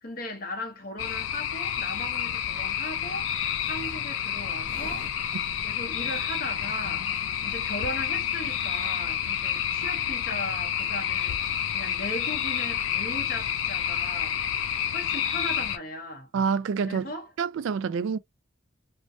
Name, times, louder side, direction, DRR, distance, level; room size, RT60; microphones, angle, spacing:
voice 1, 0.0-3.3 3.6-5.1 5.6-7.1 7.4-11.4 11.7-14.4 14.9-16.3 16.8-17.3, left 1 dB, 45° left, 0.9 m, -37 dB
sound 1, 1.0-15.8, left 9 dB, 75° left, 0.4 m, -29 dB
sound 2, 2.2-2.6 3.0-7.7 8.1-8.2 8.4-8.9 9.2-9.3 9.5-10.3 11.2-11.3, equal, 10° left, 1.4 m, -50 dB
voice 2, 16.3-17.1 17.4-18.2, right 6 dB, 70° right, 0.3 m, -27 dB
3.2 x 2.1 x 2.6 m
head